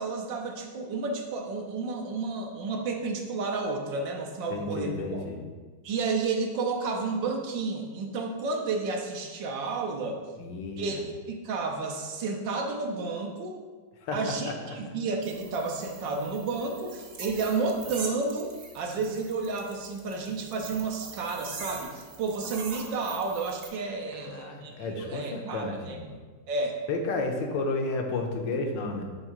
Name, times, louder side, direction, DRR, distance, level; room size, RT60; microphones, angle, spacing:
voice 1, 0.0-5.2 5.8-10.2 10.8-13.6 14.1-26.0 26.5-26.8, right 4 dB, 75° right, 2 dB, 1.5 m, -31 dB
voice 2, 4.5-5.4 10.4-11.0 14.0-14.2 14.5-14.6 24.1-26.1 26.9-29.1, left 3 dB, 75° left, 3 dB, 1.5 m, -32 dB
sound 1, 15.2-23.7, right 4 dB, 50° right, 0.7 m, -43 dB
7.4 x 3.6 x 5.0 m, 1.4 s
omnidirectional pair, 2.0 m